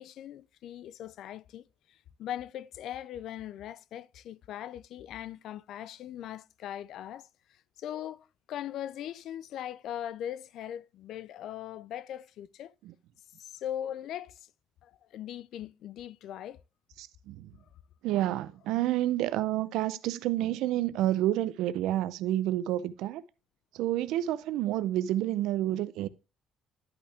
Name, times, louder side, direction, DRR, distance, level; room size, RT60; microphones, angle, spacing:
voice 1, 0.0-7.3 7.8-12.7 13.4-14.5 14.8-16.6, left 11 dB, 70° left, 0.4 m, -40 dB
voice 2, 17.0-17.5 18.0-23.2 23.7-26.1, right 13 dB, 85° right, 0.5 m, -29 dB
10.5 x 5.6 x 3.4 m
cardioid pair, 105°, 0 cm